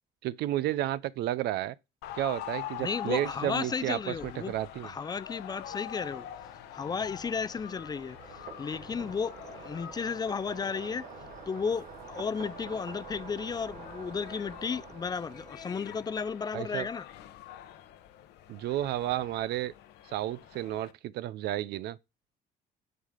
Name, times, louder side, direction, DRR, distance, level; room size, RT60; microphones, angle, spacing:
voice 1, 0.2-1.7 2.2-4.9 16.5-16.9 18.5-19.7 20.1-22.0, right 14 dB, 75° right, 0.5 m, -32 dB
sound 1, 2.0-20.9, left 11 dB, 80° left, 0.9 m, -45 dB
voice 2, 2.8-4.5 4.8-6.3 6.7-8.2 8.6-11.0 11.5-17.0, left 5 dB, 25° left, 0.4 m, -34 dB
sound 2, 6.2-16.7, right 6 dB, 50° right, 1.8 m, -48 dB
9.3 x 4.1 x 4.9 m
cardioid pair, 110°, 17 cm